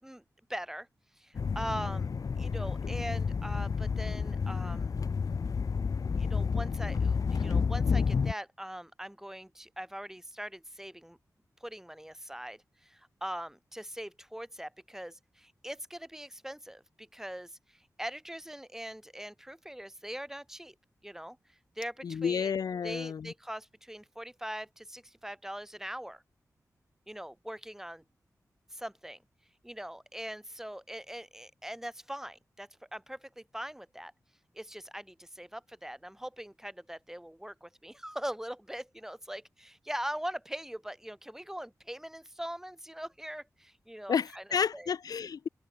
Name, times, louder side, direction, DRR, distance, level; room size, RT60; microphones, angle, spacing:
voice 1, 0.5-0.9 1.2-2.1 2.4-4.9 6.2-11.2 11.6-20.7 21.0-22.5 22.8-26.2 27.1-28.0 28.7-29.2 29.6-34.1 34.5-44.4 44.7-44.9, equal, 5° right, 7.5 m, -41 dB
sound 1, 1.4-8.3, left 5 dB, 65° left, 1.2 m, -30 dB
voice 2, 22.0-23.3 44.1-45.5, left 7 dB, 80° left, 0.8 m, -31 dB
cardioid pair, 65°, 6 cm